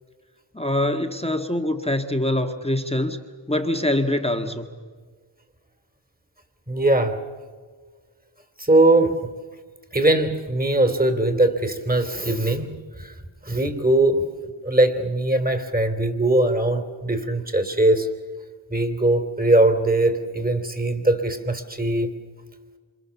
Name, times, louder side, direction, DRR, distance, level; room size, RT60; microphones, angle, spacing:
voice 1, 0.5-3.2 3.5-4.6, left 1 dB, 10° left, 5 dB, 1.7 m, -24 dB
voice 2, 6.7-7.2 8.6-9.3 9.9-13.1 13.4-14.2 14.6-18.1 18.7-22.2, right 1 dB, 20° right, 8 dB, 3.2 m, -21 dB
27.5 x 27.5 x 7.2 m, 1.5 s
wide cardioid pair, 65°, 48 cm